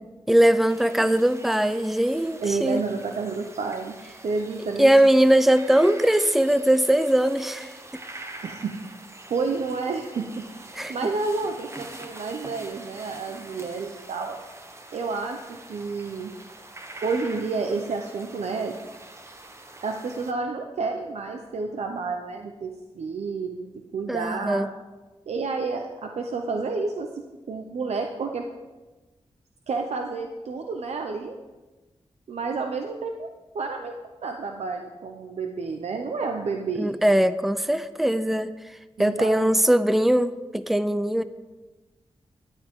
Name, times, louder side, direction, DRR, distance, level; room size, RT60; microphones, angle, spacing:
voice 1, 0.3-2.8 4.8-7.8 10.7-11.1 24.1-24.7 36.8-38.5 39.0-41.2, right 1 dB, ahead, 13 dB, 0.5 m, -21 dB
sound 1, 0.7-20.3, right 2 dB, 25° right, 1.0 m, -44 dB
voice 2, 2.4-4.0 4.2-4.9 8.4-8.7 9.3-10.4 10.9-14.4 14.9-16.3 17.0-18.7 19.8-24.7 25.3-27.1 27.5-28.4 29.7-31.4 32.3-33.3 33.5-33.9 34.2-36.9 39.0-39.5, right 4 dB, 80° right, 4 dB, 0.8 m, -30 dB
13.5 x 10.0 x 3.7 m, 1.2 s
wide cardioid pair, 100°, 11 cm